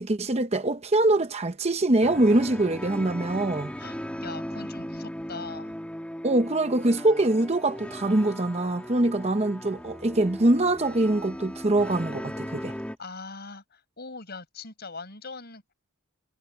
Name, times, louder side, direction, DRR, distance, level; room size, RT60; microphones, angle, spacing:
voice 1, 0.0-3.7 6.2-12.7, right 2 dB, 30° right, 0.8 m, -23 dB
sound 1, 2.0-13.0, equal, 5° left, 2.0 m, -38 dB
voice 2, 3.8-5.8 13.0-15.7, left 4 dB, 45° left, 5.9 m, -41 dB
head